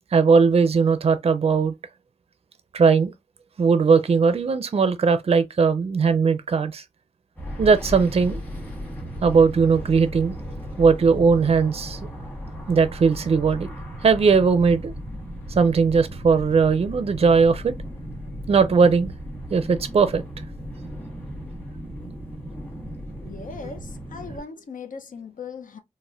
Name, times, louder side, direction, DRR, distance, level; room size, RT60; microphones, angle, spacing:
voice 1, 0.1-1.7 2.7-3.1 3.6-6.8 7.6-8.4 9.2-10.4 10.8-12.0 12.7-13.7 14.0-14.9 15.6-17.7 18.5-19.1 19.5-20.2, right 5 dB, 45° right, 0.4 m, -19 dB
sound 1, 7.4-24.4, equal, 15° left, 1.3 m, -36 dB
voice 2, 23.2-25.8, left 5 dB, 75° left, 0.6 m, -38 dB
4.1 x 2.1 x 2.4 m
wide cardioid pair, 105°, 14 cm